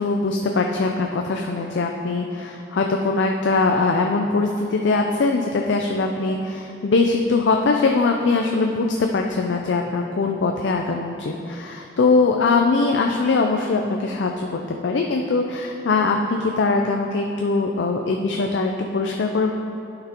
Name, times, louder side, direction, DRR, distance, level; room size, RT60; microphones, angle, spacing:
voice 1, 0.0-19.5, left 3 dB, 70° left, 2 dB, 0.4 m, -21 dB
11.0 x 5.9 x 2.9 m, 2.8 s
head